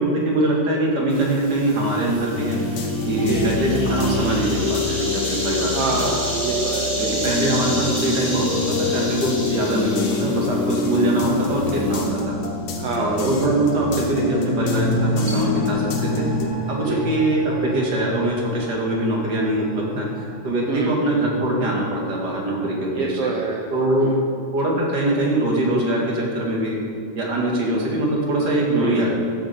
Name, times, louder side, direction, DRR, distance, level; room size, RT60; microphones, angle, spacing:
voice 1, 0.0-2.6 3.1-6.0 7.0-12.4 13.0-16.3 16.7-23.3 23.7-24.1 24.5-26.8 27.1-29.1, right 1 dB, 35° right, -2 dB, 2.0 m, -22 dB
sound 1, 1.1-12.1, equal, 10° right, 2.0 m, -31 dB
sound 2, 2.3-16.5, left 3 dB, 85° left, 2.9 m, -26 dB
voice 2, 3.1-3.5 5.7-6.9 9.5-9.6 12.8-13.2 16.8-17.0 20.7-21.0 23.0-23.7 24.0-24.2 28.8-29.0, right 4 dB, 80° right, 0 dB, 1.3 m, -26 dB
sound 3, 13.8-23.2 23.5-23.6, left 2 dB, 65° left, 2.4 m, -31 dB
13.5 x 9.0 x 4.4 m, 2.3 s
omnidirectional pair, 3.7 m